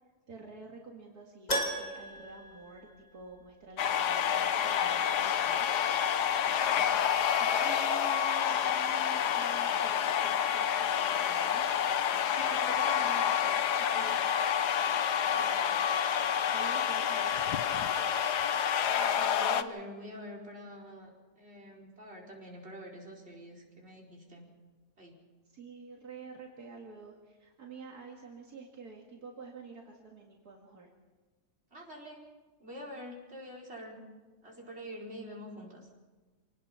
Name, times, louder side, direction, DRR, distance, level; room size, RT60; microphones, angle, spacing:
voice 1, 0.3-5.7 6.8-11.6 11.9-12.1 12.4-14.3 15.3-15.9 16.5-18.2 25.4-30.9, right 4 dB, 70° right, 0 dB, 2.6 m, -49 dB
Keyboard (musical), 1.5-3.5 3.8-3.9 6.6-6.7 6.9-7.0, equal, 25° left, 2.1 m, -36 dB
sound 1, 3.8-19.6, left 9 dB, 85° left, 1.5 m, -28 dB
voice 2, 18.9-24.5 25.0-25.1 31.7-32.2 32.6-34.1 34.4-35.9, equal, 40° right, -2 dB, 4.9 m, -46 dB
26.5 x 19.0 x 5.8 m, 1.3 s
omnidirectional pair, 1.7 m